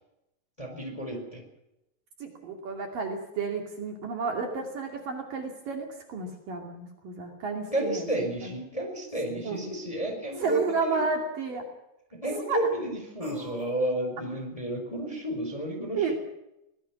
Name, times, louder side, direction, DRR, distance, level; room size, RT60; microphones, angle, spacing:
voice 1, 0.6-1.4 7.7-11.0 12.1-16.1, right 1 dB, 10° left, 3 dB, 4.3 m, -31 dB
voice 2, 2.2-8.5 9.2-9.8 10.4-11.6 12.5-12.6 16.0-16.1, right 4 dB, 55° right, 2 dB, 4.0 m, -32 dB
sound 1, 8.1-8.2 10.4-10.8 13.2-13.7, equal, 20° right, 4.4 m, -44 dB
24.5 x 19.0 x 6.0 m, 0.89 s
omnidirectional pair, 5.0 m